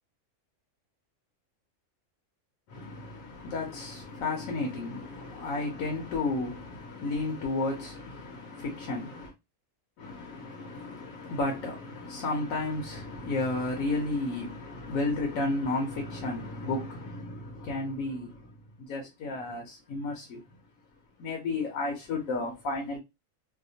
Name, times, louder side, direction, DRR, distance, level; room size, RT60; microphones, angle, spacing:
voice 1, 2.7-9.3 10.0-20.4 21.2-23.0, left 2 dB, 70° left, 1.0 m, -33 dB
2.8 x 2.1 x 2.7 m
omnidirectional pair, 1.5 m